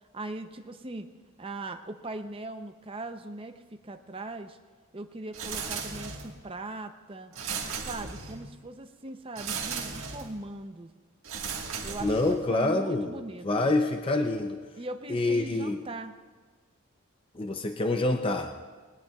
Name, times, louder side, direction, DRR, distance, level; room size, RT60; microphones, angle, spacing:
voice 1, 0.1-1.1 1.4-4.6 4.9-7.3 7.8-10.9 11.8-13.5 14.8-16.2, right 2 dB, 25° right, 7 dB, 0.6 m, -40 dB
sound 1, 5.3-6.4 7.3-8.5 9.3-10.4 11.2-12.5, right 5 dB, 70° right, 1.6 m, -36 dB
voice 2, 12.0-14.6 15.1-15.8 17.3-18.5, left 2 dB, 25° left, 5 dB, 0.5 m, -27 dB
20.5 x 19.0 x 2.4 m, 1.4 s
head